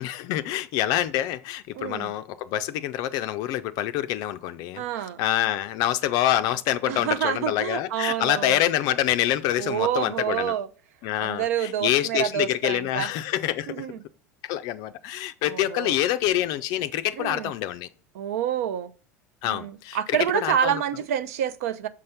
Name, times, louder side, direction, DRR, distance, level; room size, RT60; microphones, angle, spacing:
voice 1, 0.0-4.8 5.2-10.5 11.0-13.9 14.4-17.9 19.4-20.8, left 13 dB, 50° left, 0.4 m, -26 dB
voice 2, 1.7-2.1 4.8-5.2 6.9-8.6 9.6-10.7 11.2-13.1 13.7-14.0 15.5-16.0 17.2-17.5 18.1-18.9 19.4-21.9, right 10 dB, 65° right, 0.5 m, -28 dB
6.3 x 4.3 x 5.5 m
figure-of-eight pair, 75°, 9 cm